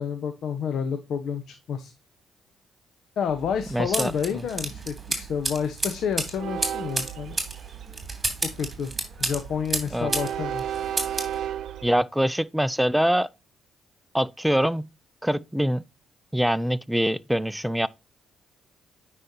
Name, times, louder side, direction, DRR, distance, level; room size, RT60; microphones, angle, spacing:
voice 1, 0.0-1.9 3.2-7.4 8.4-8.9 9.2-10.7, left 7 dB, 70° left, 1.1 m, -29 dB
Train, 3.3-11.9, right 10 dB, 70° right, 0.8 m, -36 dB
voice 2, 3.7-4.4 9.9-10.1 11.8-13.3 14.1-14.9 15.2-15.8 16.3-17.9, equal, 5° right, 0.5 m, -24 dB
sound 1, 3.9-10.3 10.6-11.3, right 2 dB, 20° right, 2.9 m, -30 dB
9.4 x 5.5 x 2.8 m
cardioid pair, 90°, 0 cm